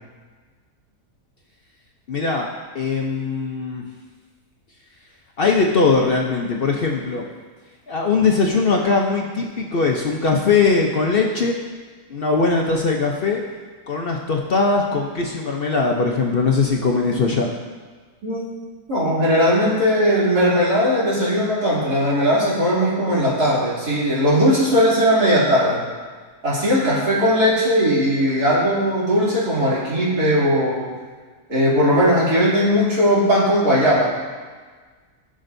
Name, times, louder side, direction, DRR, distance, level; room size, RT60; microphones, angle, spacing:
voice 1, 2.1-2.5 2.7-3.8 5.4-7.3 7.9-11.5 12.1-13.4 13.9-17.5, left 4 dB, 50° left, 0 dB, 0.7 m, -20 dB
voice 2, 18.9-25.8 26.4-30.9 31.5-34.1, equal, 85° right, -8 dB, 3.3 m, -18 dB
15.0 x 6.2 x 2.6 m, 1.5 s
omnidirectional pair, 1.6 m